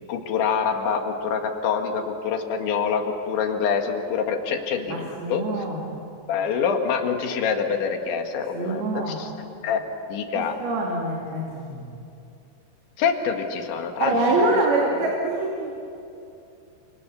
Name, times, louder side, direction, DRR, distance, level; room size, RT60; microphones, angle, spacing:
voice 1, 0.1-5.4 6.3-9.3 9.6-9.8 10.1-10.6 13.0-14.6, left 6 dB, 75° left, 4 dB, 4.2 m, -26 dB
voice 2, 4.9-5.8 8.5-9.2 10.6-12.0 14.0-15.7, right 2 dB, 60° right, -2 dB, 4.4 m, -25 dB
30.0 x 27.0 x 7.0 m, 2.7 s
omnidirectional pair, 5.3 m